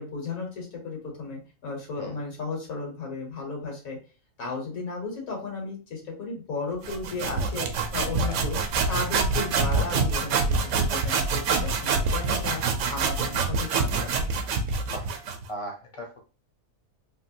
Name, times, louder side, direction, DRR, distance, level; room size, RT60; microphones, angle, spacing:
voice 1, 0.0-4.0 4.4-8.6 8.9-14.3, left 4 dB, 90° left, 0 dB, 1.7 m, -34 dB
sound 1, 6.8-15.5, right 4 dB, 70° right, 0.9 m, -26 dB
voice 2, 14.9-16.2, equal, 35° left, 1 dB, 0.5 m, -39 dB
3.3 x 2.5 x 2.7 m, 0.35 s
omnidirectional pair, 1.4 m